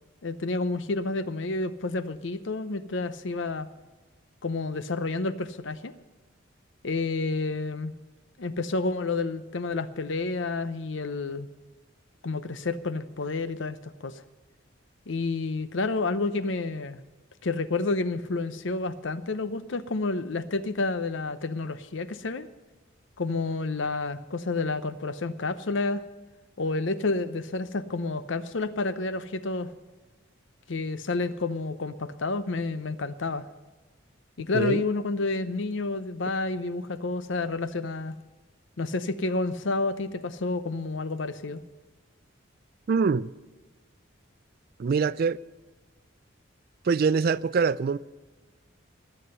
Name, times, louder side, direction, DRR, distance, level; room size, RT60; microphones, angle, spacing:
voice 1, 0.2-3.7 4.4-5.9 6.8-7.9 8.4-11.5 12.2-14.2 15.1-17.0 17.4-22.5 23.2-26.0 26.6-29.7 30.7-33.5 34.4-38.1 38.8-41.6, left 3 dB, 65° left, 0.7 m, -30 dB
voice 2, 42.9-43.3 44.8-45.4 46.9-48.0, right 5 dB, 45° right, 0.3 m, -24 dB
20.0 x 7.8 x 5.5 m
head